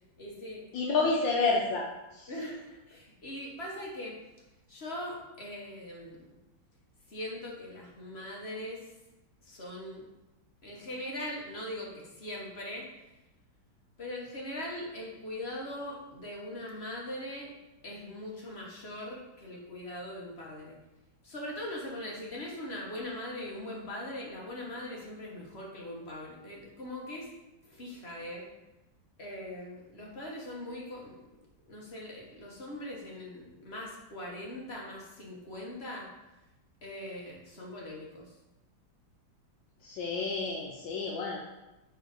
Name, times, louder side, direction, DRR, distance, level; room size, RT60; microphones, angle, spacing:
voice 1, 0.2-0.6 2.3-4.2 4.7-6.3 7.1-8.9 9.4-10.0 10.6-12.9 14.0-17.5 17.8-20.8 21.2-27.3 27.6-28.5 29.2-31.2 31.7-36.1 36.8-38.4, left 1 dB, 40° left, -3 dB, 1.2 m, -41 dB
voice 2, 0.7-2.3 39.8-41.4, left 3 dB, 75° left, -2 dB, 1.4 m, -29 dB
4.5 x 4.4 x 5.2 m, 0.99 s
omnidirectional pair, 2.1 m